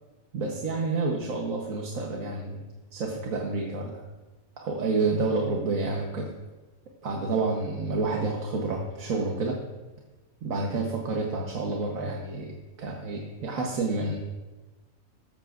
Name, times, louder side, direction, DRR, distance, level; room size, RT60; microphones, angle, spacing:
voice 1, 0.3-2.6 2.9-4.0 4.6-6.3 7.0-9.6 10.4-14.2, right 3 dB, 90° right, 0 dB, 1.6 m, -29 dB
14.0 x 14.0 x 2.5 m, 1.2 s
omnidirectional pair, 1.4 m